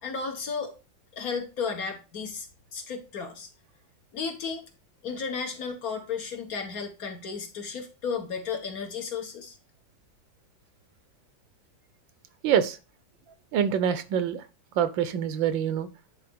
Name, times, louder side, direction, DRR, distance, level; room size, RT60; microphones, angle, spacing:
voice 1, 0.0-0.7 1.1-2.5 2.7-3.5 4.1-4.6 5.0-9.5, left 5 dB, 50° left, 4 dB, 1.6 m, -33 dB
voice 2, 12.4-12.8 13.5-14.4 14.8-15.9, right 8 dB, 80° right, 12 dB, 1.5 m, -25 dB
9.7 x 4.3 x 3.6 m, 0.30 s
omnidirectional pair, 2.1 m